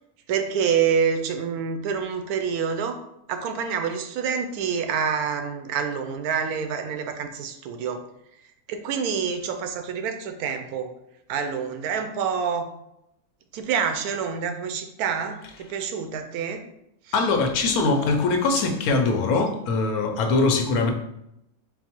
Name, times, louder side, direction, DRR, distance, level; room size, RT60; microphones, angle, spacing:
voice 1, 0.3-3.0 3.3-8.0 8.7-10.9 11.3-12.7 13.5-16.6, right 7 dB, 90° right, 6 dB, 1.1 m, -27 dB
voice 2, 17.1-20.9, left 3 dB, 80° left, 4 dB, 1.2 m, -22 dB
4.4 x 2.1 x 4.3 m, 0.82 s
omnidirectional pair, 1.5 m